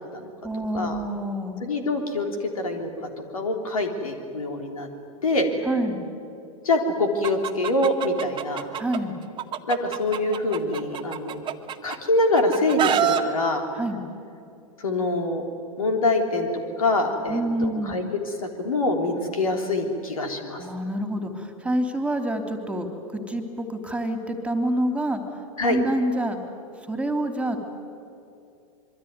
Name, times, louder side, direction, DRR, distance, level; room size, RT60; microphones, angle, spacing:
voice 1, 0.4-1.6 5.6-6.0 8.7-9.2 13.8-14.0 17.3-18.1 20.6-22.9 23.3-25.2 25.6-26.4 26.9-27.6, right 1 dB, 5° right, 5 dB, 3.0 m, -27 dB
voice 2, 1.6-2.9 3.3-4.9 5.2-5.7 6.6-8.7 9.7-11.4 11.8-13.6 14.8-15.4 15.8-16.5 16.8-18.0 18.4-20.6 25.6-25.8, left 2 dB, 80° left, 4 dB, 3.5 m, -25 dB
Chicken rooster, 7.2-9.0 9.4-12.0 12.3-13.2, right 9 dB, 25° right, 1.7 m, -26 dB
25.5 x 23.5 x 9.6 m, 2.6 s
hypercardioid pair, 95°, 18 cm